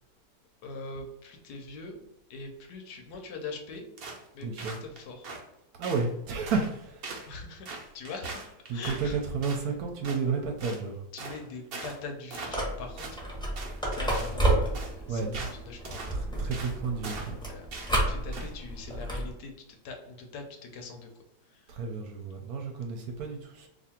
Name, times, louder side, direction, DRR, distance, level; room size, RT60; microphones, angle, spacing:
voice 1, 0.6-2.0 2.3-3.8 4.3-5.3 7.3-7.7 7.9-9.2 11.1-13.2 13.9-16.2 17.4-21.1 21.4-21.8, left 3 dB, 75° left, 3 dB, 1.2 m, -42 dB
sound 1, 4.0-4.3 4.6-5.4 5.8-6.1 6.5-6.8 7.0-7.3 7.6-9.6 10.0-10.2 10.6-10.8 11.2-11.4 11.7-12.0 12.3-12.7 13.0-13.2 13.6-14.4 14.7-14.9 15.3-15.6 15.8-16.1 16.5-16.8 17.0-17.4 17.7-17.9 18.3-18.5, right 3 dB, 90° right, 0.5 m, -41 dB
voice 2, 4.4-4.8 5.7-7.1 8.7-11.0 15.1-15.5 16.1-17.4 21.7-23.7, right 4 dB, 70° right, 3 dB, 1.0 m, -32 dB
sound 2, 12.5-19.3, right 1 dB, 5° left, 0.8 m, -31 dB
2.8 x 2.6 x 4.2 m, 0.86 s
omnidirectional pair, 1.8 m